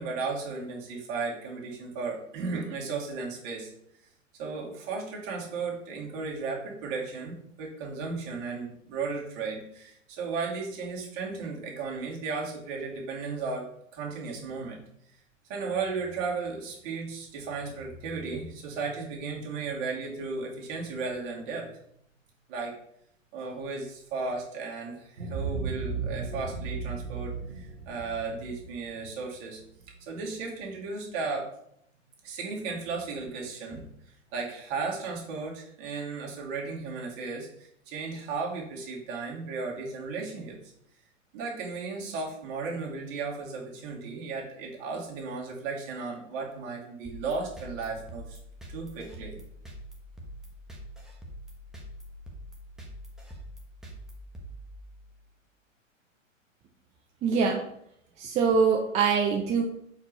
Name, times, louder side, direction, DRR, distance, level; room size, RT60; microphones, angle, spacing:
voice 1, 0.0-3.7 4.4-14.8 15.5-21.7 22.5-22.7 23.3-29.6 30.0-31.5 32.2-40.6 41.3-48.4 48.7-49.4, right 4 dB, 40° right, -2 dB, 2.3 m, -35 dB
sound 1, 25.2-29.9, right 4 dB, 75° right, 1.1 m, -35 dB
sound 2, 47.0-55.2, equal, ahead, 1.2 m, -45 dB
voice 2, 57.2-57.6 58.2-59.6, right 5 dB, 15° right, 0 dB, 0.5 m, -24 dB
4.8 x 4.3 x 5.3 m, 0.73 s
hypercardioid pair, 115°, 39 cm